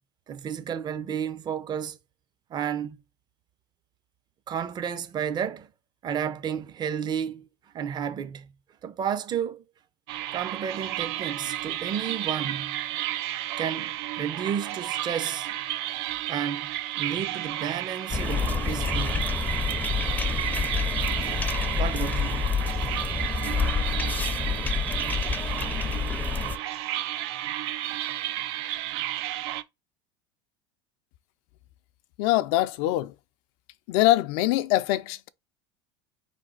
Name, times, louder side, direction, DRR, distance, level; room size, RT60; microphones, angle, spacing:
voice 1, 0.3-2.0 2.5-3.0 4.5-5.7 6.0-7.5 7.7-8.5 8.8-9.6 10.3-12.8 13.6-15.5 16.3-16.7 17.0-19.3 21.4-21.5 21.8-22.5 25.2-25.3, right 8 dB, 35° right, 0.6 m, -32 dB
sound 1, 10.1-29.6, right 13 dB, 75° right, 0.4 m, -32 dB
sound 2, 18.1-26.6, left 5 dB, 15° left, 0.5 m, -28 dB
voice 2, 32.2-33.1 33.9-35.3, left 16 dB, 70° left, 0.4 m, -23 dB
4.1 x 3.3 x 3.8 m
supercardioid pair, 105°, 13 cm